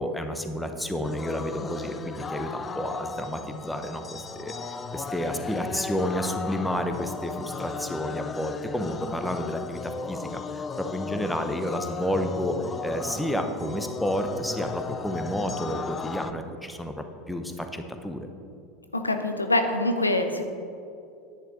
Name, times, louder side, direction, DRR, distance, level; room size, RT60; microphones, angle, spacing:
voice 1, 0.0-18.3, equal, 5° left, 6 dB, 0.9 m, -31 dB
sound 1, 1.0-16.3, left 4 dB, 25° left, 0.5 m, -36 dB
voice 2, 18.9-20.4, left 1 dB, 90° left, 6 dB, 0.6 m, -24 dB
10.5 x 9.2 x 4.0 m, 2.6 s
figure-of-eight pair, 75°, 0 cm